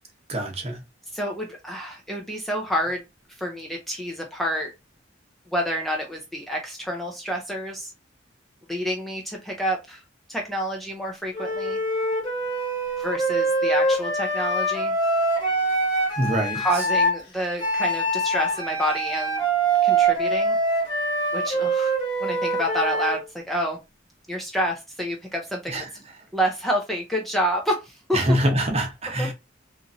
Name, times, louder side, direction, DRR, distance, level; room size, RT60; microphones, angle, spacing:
voice 1, 0.3-0.8 16.2-16.6 25.7-25.8 28.1-29.3, equal, 35° right, 0.7 m, -24 dB
voice 2, 1.1-3.0 3.4-4.7 5.5-7.9 8.7-10.0 10.3-11.8 13.0-14.9 16.5-19.4 19.8-20.6 21.3-21.9 22.2-23.8 24.3-25.8 26.3-28.2 29.2-29.3, equal, ahead, 0.4 m, -28 dB
Wind instrument woodwind instrument, 11.3-17.2 17.6-23.2, right 2 dB, 25° left, 1.2 m, -24 dB
2.9 x 2.5 x 2.4 m
head